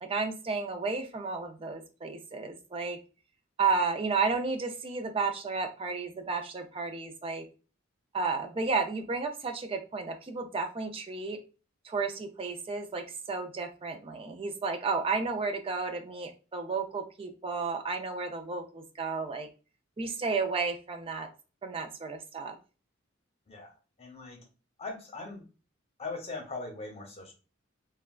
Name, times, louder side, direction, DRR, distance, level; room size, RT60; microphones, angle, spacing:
voice 1, 0.0-3.0 3.6-7.4 8.1-11.4 11.8-19.5 20.0-21.3 21.6-22.6, right 4 dB, 25° right, 6 dB, 0.4 m, -32 dB
voice 2, 23.5-24.5 24.8-25.4 26.0-27.3, left 3 dB, 30° left, 1 dB, 0.8 m, -40 dB
3.3 x 2.2 x 2.3 m, 0.34 s
head